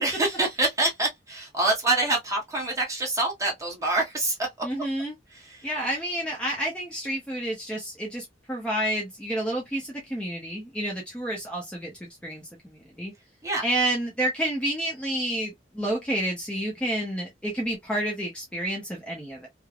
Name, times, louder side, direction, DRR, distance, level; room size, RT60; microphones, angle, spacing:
voice 1, 0.0-4.7 5.3-5.7 13.4-13.6, right 2 dB, 20° right, 1.1 m, -26 dB
voice 2, 4.6-5.2 5.6-13.1 13.6-19.5, right 1 dB, 5° left, 0.6 m, -30 dB
3.2 x 2.0 x 2.3 m
head